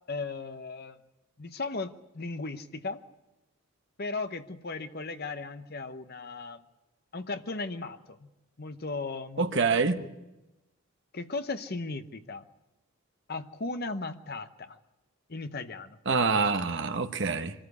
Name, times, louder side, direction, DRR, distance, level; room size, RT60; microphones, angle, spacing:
voice 1, 0.1-1.0 1.4-3.0 4.0-6.6 7.1-8.3 8.6-10.1 11.1-12.5 13.3-14.8 15.3-16.0, left 3 dB, 45° left, 9 dB, 0.9 m, -36 dB
voice 2, 9.4-10.0 16.1-17.5, right 4 dB, 55° right, 7 dB, 1.2 m, -26 dB
24.0 x 14.0 x 8.3 m, 0.99 s
head